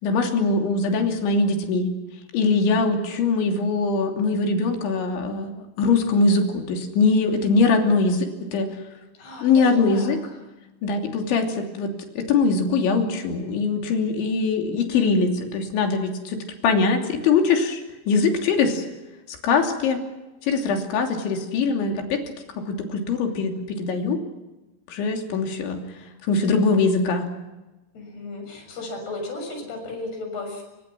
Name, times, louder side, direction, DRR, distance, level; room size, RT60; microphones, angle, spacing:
voice 1, 0.0-1.9 2.3-8.7 9.4-10.2 10.8-16.4 16.6-18.9 19.3-20.0 20.4-22.2 22.6-24.2 24.9-25.8 26.2-27.3, left 4 dB, 70° left, 3 dB, 5.2 m, -22 dB
voice 2, 9.1-10.1 27.9-30.6, left 2 dB, 55° left, 4 dB, 8.4 m, -35 dB
27.5 x 24.5 x 6.2 m, 1.1 s
omnidirectional pair, 5.6 m